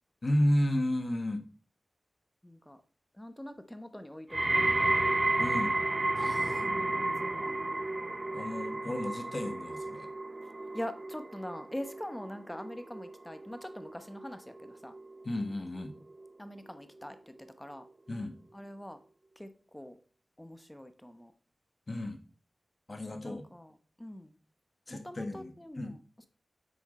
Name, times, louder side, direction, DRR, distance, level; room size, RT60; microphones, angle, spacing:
voice 1, 0.2-1.4 5.4-5.8 6.1-6.7 8.3-10.1 15.2-15.9 18.1-18.4 21.9-22.2 22.9-23.4 24.9-26.0, left 1 dB, 40° left, 6 dB, 1.4 m, -32 dB
voice 2, 2.4-2.8 3.1-5.0 6.6-7.6 10.7-14.9 16.4-17.8 18.5-19.0 19.4-20.0 20.4-21.3 23.2-24.4 24.9-26.3, left 1 dB, 10° left, 9 dB, 0.9 m, -44 dB
sound 1, 4.3-15.4 15.8-16.3 17.0-17.1, right 2 dB, 30° right, 0.3 m, -32 dB
8.3 x 6.2 x 4.2 m, 0.39 s
wide cardioid pair, 75°, 0 cm